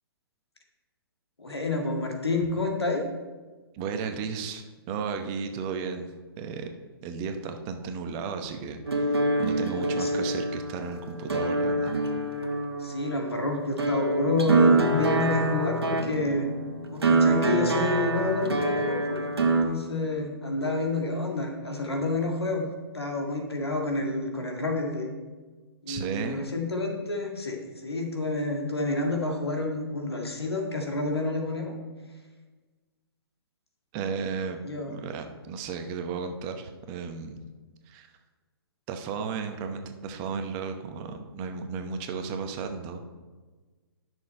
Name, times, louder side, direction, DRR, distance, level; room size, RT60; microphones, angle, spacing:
voice 1, 1.4-3.0 9.7-10.3 12.8-16.5 16.9-22.7 22.9-25.1 25.8-31.7 34.6-34.9, left 2 dB, 85° left, 2 dB, 1.9 m, -29 dB
voice 2, 3.7-6.1 6.4-6.7 7.0-11.9 25.9-26.5 33.9-34.6 34.9-37.4 37.9-38.1 38.9-43.0, right 5 dB, 30° right, 6 dB, 0.9 m, -34 dB
sound 1, 8.9-19.6, right 2 dB, 80° right, 1.4 m, -26 dB
11.0 x 6.3 x 4.4 m, 1.3 s
figure-of-eight pair, 130°, 13 cm